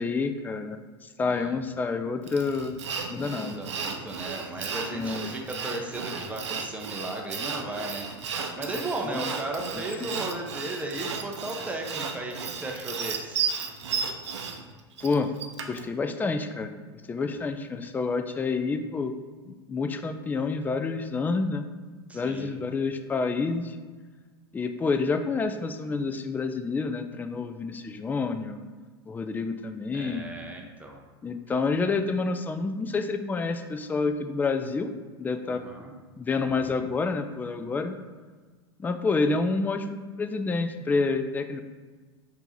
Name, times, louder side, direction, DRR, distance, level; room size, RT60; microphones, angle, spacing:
voice 1, 0.0-2.7 3.1-3.6 4.9-5.3 9.0-9.3 10.0-10.1 15.0-15.3 15.7-16.7 17.1-19.1 19.5-21.7 22.1-23.8 24.5-28.6 29.1-30.3 31.2-34.9 35.2-35.6 36.2-37.9 38.8-41.6, left 4 dB, 10° left, 7 dB, 0.3 m, -28 dB
voice 2, 1.2-1.6 3.2-13.5 17.2-17.4 22.1-22.6 29.9-31.0 31.5-31.6 35.5-35.9, right 2 dB, 10° right, 1 dB, 0.7 m, -36 dB
Sawing, 2.3-15.9, right 6 dB, 80° right, 0.5 m, -34 dB
4.4 x 2.7 x 4.4 m, 1.4 s
hypercardioid pair, 90°, 14 cm